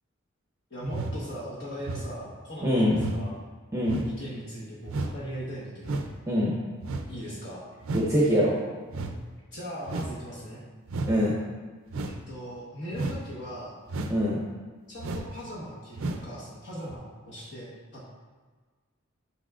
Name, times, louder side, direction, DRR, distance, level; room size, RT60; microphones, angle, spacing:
voice 1, 0.7-3.4 4.0-6.1 7.1-7.6 9.5-10.6 12.0-13.8 14.9-18.1, equal, 55° left, -7 dB, 1.3 m, -39 dB
sound 1, 0.9-1.2 1.8-2.2 2.9-3.2 3.8-4.1 4.9-5.2 5.8-6.2 6.8-7.1 7.8-8.1 8.9-9.2 9.9-10.2 10.9-11.2 11.9-12.2 12.9-13.2 13.9-14.2 15.0-15.3 16.0-16.3 16.9-17.0, right 2 dB, 80° right, 0.5 m, -33 dB
voice 2, 2.6-3.0 3.7-4.0 6.3-6.5 7.9-8.6 11.1-11.3 14.1-14.4, equal, 15° right, -6 dB, 0.7 m, -23 dB
6.4 x 6.0 x 2.5 m, 1.4 s
head